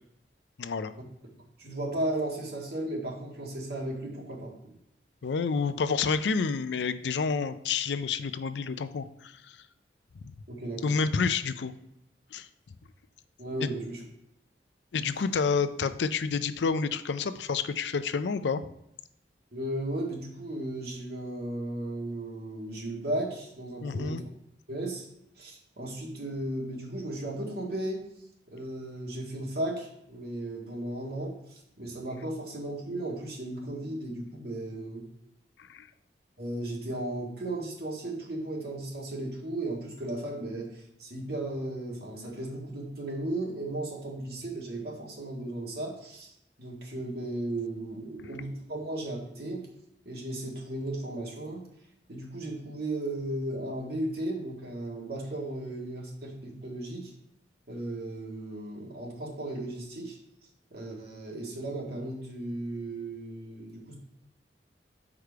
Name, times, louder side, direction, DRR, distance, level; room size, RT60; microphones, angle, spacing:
voice 1, 0.6-0.9 5.2-9.6 10.2-10.3 10.8-11.7 12.3-12.5 13.6-13.7 14.9-18.6 23.8-24.2 35.7-35.9 48.2-48.3, left 5 dB, 75° left, 12 dB, 0.4 m, -29 dB
voice 2, 1.6-4.5 10.5-10.9 13.4-14.0 19.5-24.2 24.7-25.1 25.4-28.0 28.5-35.1 36.4-40.7 41.0-46.3 46.6-49.7 50.1-51.6 52.1-57.1 57.7-60.2 60.7-63.9, right 1 dB, 60° right, -2 dB, 1.8 m, -35 dB
6.6 x 4.9 x 4.6 m, 0.80 s
head